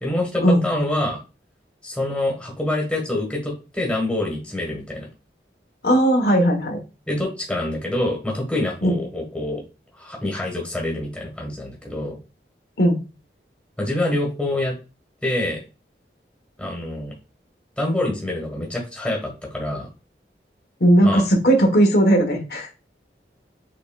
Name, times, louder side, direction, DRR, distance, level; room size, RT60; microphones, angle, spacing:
voice 1, 0.0-1.2 1.8-5.1 7.1-9.6 9.9-12.2 13.8-14.8 15.2-15.6 16.6-17.1 17.8-19.9 21.0-21.2, left 1 dB, 5° left, -1 dB, 1.4 m, -26 dB
voice 2, 5.8-6.8 8.8-8.9 12.8-13.0 20.8-22.7, right 1 dB, 65° left, 1 dB, 1.2 m, -17 dB
6.0 x 3.8 x 2.3 m, 0.30 s
head